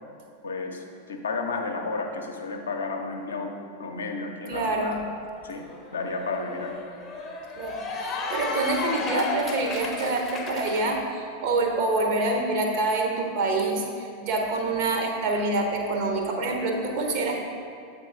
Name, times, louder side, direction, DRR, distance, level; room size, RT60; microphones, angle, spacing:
voice 1, 0.4-3.5 3.8-5.0 5.4-5.6 5.9-6.7, left 3 dB, 70° left, 3 dB, 0.6 m, -32 dB
voice 2, 4.5-5.0 7.6-17.4, right 2 dB, 45° right, 1 dB, 0.8 m, -26 dB
Cheering / Applause, 5.0-5.1 5.4-10.8, left 3 dB, 25° left, 0.7 m, -33 dB
7.5 x 3.8 x 3.6 m, 2.4 s
figure-of-eight pair, 90°, 0 cm